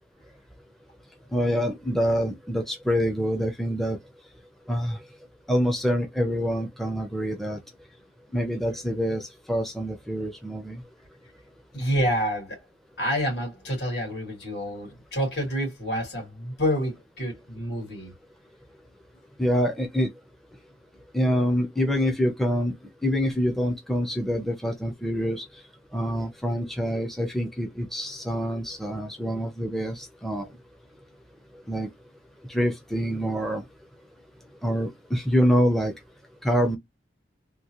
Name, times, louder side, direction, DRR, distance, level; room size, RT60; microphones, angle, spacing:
voice 1, 1.3-4.0 4.7-5.0 5.5-7.6 8.3-10.8 19.4-20.1 21.1-22.7 23.0-25.4 25.9-30.5 31.7-31.9 32.5-33.6 34.6-35.9 36.4-36.8, equal, ahead, 0.5 m, -26 dB
voice 2, 11.7-12.6 13.0-18.1, equal, 70° left, 2.2 m, -28 dB
3.6 x 2.3 x 2.9 m
head